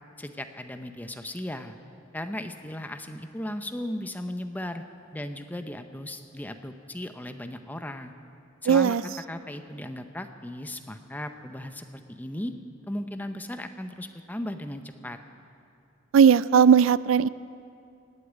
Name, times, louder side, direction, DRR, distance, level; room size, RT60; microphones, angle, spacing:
voice 1, 0.2-1.8 2.1-4.8 5.1-8.1 8.6-9.0 9.3-12.5 12.9-15.2, left 1 dB, 10° left, 7 dB, 0.7 m, -36 dB
voice 2, 8.7-9.0 16.1-17.3, right 7 dB, 85° right, 18 dB, 0.3 m, -17 dB
18.0 x 8.5 x 9.2 m, 2.6 s
head